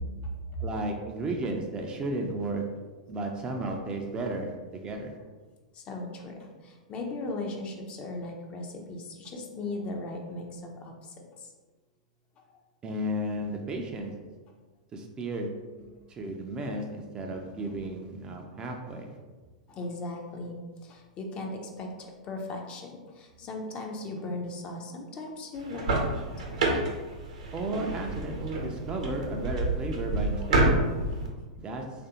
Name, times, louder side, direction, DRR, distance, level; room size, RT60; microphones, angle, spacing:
voice 1, 0.6-2.6 3.1-5.2 12.8-14.1 14.9-15.5 16.1-19.2 27.5-30.7 31.6-31.8, right 1 dB, 25° right, 2 dB, 0.4 m, -33 dB
voice 2, 5.7-6.3 6.6-11.1 11.4-11.5 15.8-15.9 19.7-26.2, left 2 dB, 30° left, 2 dB, 0.5 m, -38 dB
sound 1, 25.6-31.3, right 2 dB, 70° right, 0.7 m, -28 dB
3.2 x 2.5 x 2.8 m, 1.3 s
figure-of-eight pair, 100°, 4 cm